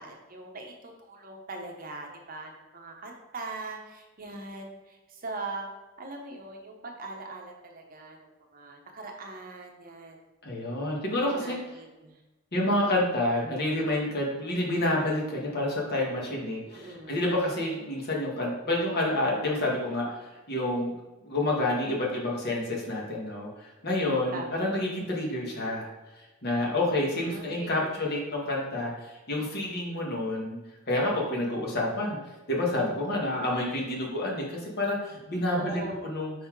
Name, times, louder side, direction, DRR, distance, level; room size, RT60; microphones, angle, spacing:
voice 1, 0.0-5.7 6.0-10.2 11.4-12.2 16.7-17.2 24.0-24.7 27.1-28.1 35.5-36.0, right 2 dB, 45° right, 2 dB, 0.8 m, -41 dB
voice 2, 10.4-11.6 12.5-20.9 21.2-25.9 26.4-30.6 30.9-32.2 32.5-36.3, left 1 dB, 50° left, -2 dB, 1.5 m, -29 dB
5.4 x 4.1 x 4.6 m, 1.1 s
head